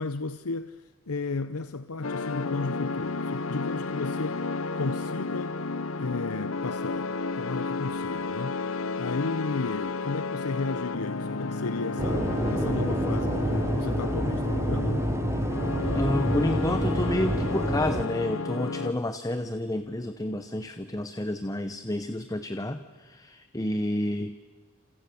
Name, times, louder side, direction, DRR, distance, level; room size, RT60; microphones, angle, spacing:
voice 1, 0.0-5.6 6.0-15.1, left 3 dB, 90° left, 0.8 m, -34 dB
sound 1, 2.0-18.9, left 3 dB, 70° left, 1.0 m, -32 dB
sound 2, 12.0-18.0, right 1 dB, 10° right, 0.7 m, -28 dB
voice 2, 15.9-24.4, left 1 dB, 15° left, 0.9 m, -30 dB
29.5 x 27.0 x 7.0 m
head